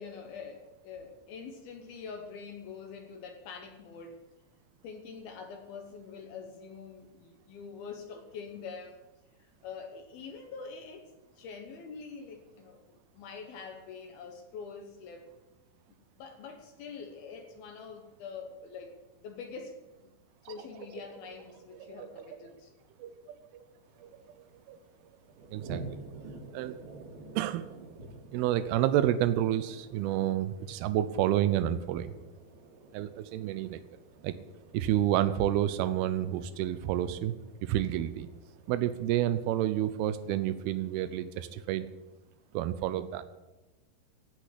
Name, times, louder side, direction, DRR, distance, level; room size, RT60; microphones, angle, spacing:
voice 1, 0.0-4.2 4.8-9.0 9.4-11.1 11.4-15.3 16.2-20.1 20.5-22.7, left 5 dB, 70° left, 5 dB, 2.6 m, -45 dB
sound 1, 20.5-25.8, right 8 dB, 75° right, 2.9 m, -50 dB
sound 2, 23.8-41.1, right 3 dB, 50° right, 3.6 m, -50 dB
voice 2, 25.5-25.8 26.5-26.8 27.4-27.7 28.3-32.1 32.9-33.8 34.2-34.3 34.7-37.4 37.6-38.3 38.7-41.9 42.5-43.2, right 12 dB, 90° right, 12 dB, 2.3 m, -29 dB
16.0 x 6.2 x 9.9 m, 1.1 s
omnidirectional pair, 5.3 m